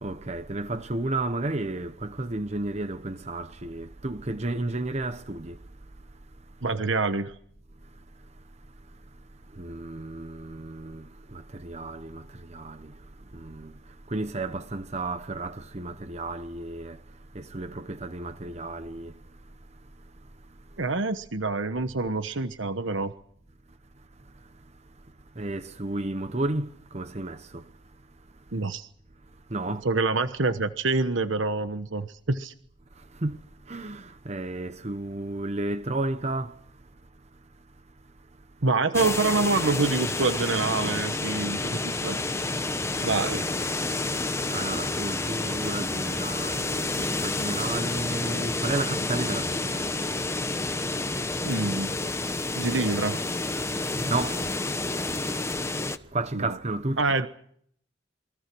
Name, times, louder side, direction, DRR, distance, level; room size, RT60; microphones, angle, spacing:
voice 1, 0.0-5.6 9.6-11.0 11.3-12.2 12.5-12.8 13.4-13.7 14.1-17.0 17.3-19.1 25.4-26.7 26.9-27.4 29.5-29.8 33.2-33.4 33.7-36.5 43.0-43.4 44.5-49.8 54.0-54.4 56.1-57.0, right 2 dB, 35° right, 1.0 m, -32 dB
voice 2, 6.6-7.3 20.8-23.1 28.5-28.9 29.7-32.5 38.6-42.2 43.0-43.5 51.4-51.9 52.6-53.2 56.3-56.5 57.0-57.3, right 3 dB, 80° right, 1.2 m, -26 dB
sound 1, 38.9-56.0, left 2 dB, 15° left, 1.1 m, -29 dB
28.0 x 23.0 x 6.2 m
head